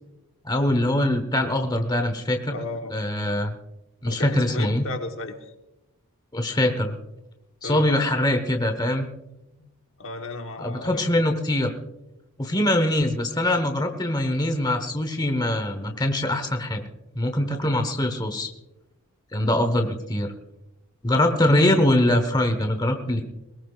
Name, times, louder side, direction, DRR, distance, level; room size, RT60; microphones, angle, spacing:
voice 1, 0.4-2.5 2.9-3.6 4.0-4.8 6.3-7.0 7.6-9.1 10.6-11.7 12.4-16.8 17.1-18.5 19.3-20.3 21.0-23.2, left 1 dB, 20° left, 6 dB, 1.1 m, -23 dB
voice 2, 2.5-2.9 4.1-5.5 7.6-8.0 9.6-9.7 10.0-11.0 11.3-11.4, left 2 dB, 60° left, 5 dB, 1.3 m, -34 dB
21.0 x 18.0 x 2.4 m, 0.96 s
head